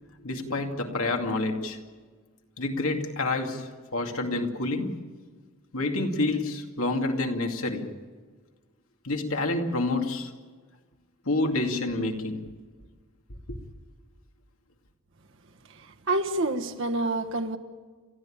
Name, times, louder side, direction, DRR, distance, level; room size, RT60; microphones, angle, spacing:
voice 1, 0.2-1.8 2.6-5.0 5.7-7.9 9.0-10.3 11.2-12.5 13.5-13.6, left 2 dB, 85° left, 2.4 m, -28 dB
voice 2, 15.8-17.6, right 2 dB, 65° right, 1.4 m, -28 dB
30.0 x 13.5 x 8.8 m
head